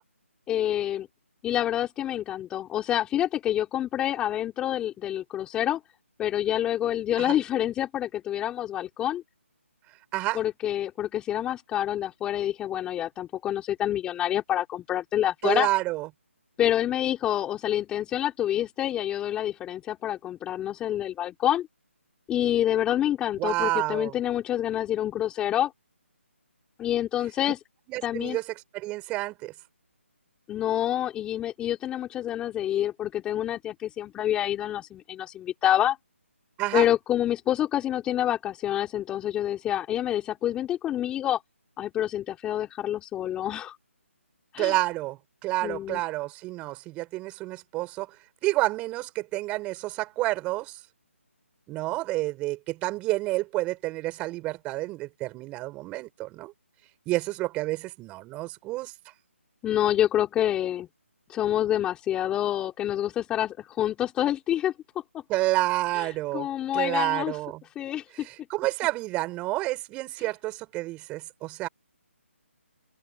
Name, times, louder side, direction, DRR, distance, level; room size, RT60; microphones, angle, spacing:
voice 1, 0.5-1.1 1.4-5.8 6.2-9.2 10.3-15.7 16.6-21.7 22.3-25.7 26.8-27.6 28.0-28.4 30.5-36.0 36.7-41.4 41.8-43.8 44.5-44.7 45.6-46.0 59.6-60.9 61.3-64.7 65.1-65.2 66.3-67.4 67.7-68.3, left 11 dB, 10° left, 4.5 m, -27 dB
voice 2, 15.4-16.1 23.4-24.2 27.9-28.4 28.7-29.5 36.6-36.9 44.6-48.1 48.4-50.8 51.7-56.5 57.1-58.9 65.3-66.5 66.7-67.6 68.1-71.7, right 19 dB, 15° right, 6.3 m, -29 dB
figure-of-eight pair, 155°, 7 cm